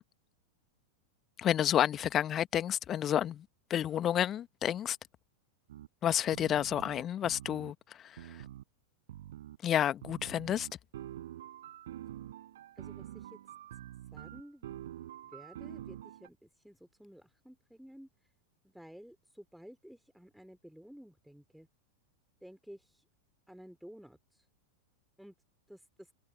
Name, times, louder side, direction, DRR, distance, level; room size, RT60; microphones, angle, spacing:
voice 1, 1.4-5.0 6.0-8.4 9.6-10.7, left 10 dB, 30° left, 1.5 m, -30 dB
sound 1, 5.7-5.9 6.3-7.7 8.2-8.6 9.1-9.6 10.0-16.3, right 12 dB, 60° right, 7.5 m, -46 dB
voice 2, 12.7-13.4 14.1-14.8 15.2-18.1 18.6-21.7 22.4-23.0 23.5-24.5 25.2-25.3 25.7-26.1, equal, ahead, 3.4 m, -53 dB
figure-of-eight pair, 90°, 0 cm